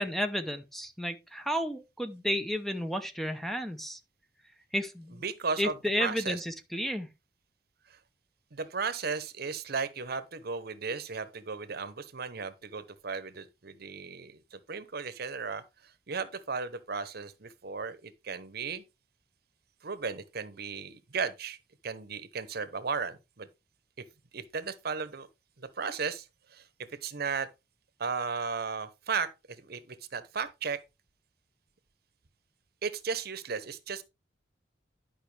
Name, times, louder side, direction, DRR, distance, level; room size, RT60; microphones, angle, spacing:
voice 1, 0.0-4.0 4.7-5.2 5.6-7.1, equal, ahead, 0.7 m, -32 dB
voice 2, 5.2-5.7 6.0-6.4 8.5-15.6 16.1-18.8 19.8-21.6 21.8-23.5 24.3-25.3 25.6-26.6 27.0-27.5 28.0-29.3 29.6-30.8 32.8-34.0, right 5 dB, 60° right, 0.9 m, -35 dB
11.0 x 5.5 x 3.3 m
head